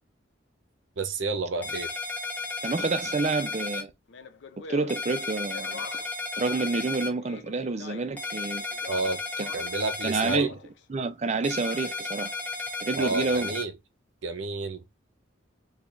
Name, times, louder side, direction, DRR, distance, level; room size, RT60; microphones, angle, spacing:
voice 1, 1.0-1.9 8.9-9.2 9.5-10.5 12.9-13.7 14.2-14.8, right 3 dB, 70° right, 0.7 m, -30 dB
sound 1, 1.6-3.8 4.9-7.1 8.2-10.4 11.4-13.6, left 3 dB, 10° left, 0.7 m, -34 dB
voice 2, 2.6-3.9 4.7-5.9 6.4-8.6 9.4-9.5 10.0-10.5 10.9-12.3 12.8-13.6, right 3 dB, 35° right, 0.4 m, -28 dB
Speech, 4.1-6.3 7.1-8.2 8.7-9.8 10.2-10.8, left 5 dB, 65° left, 0.5 m, -44 dB
3.2 x 2.3 x 3.8 m
head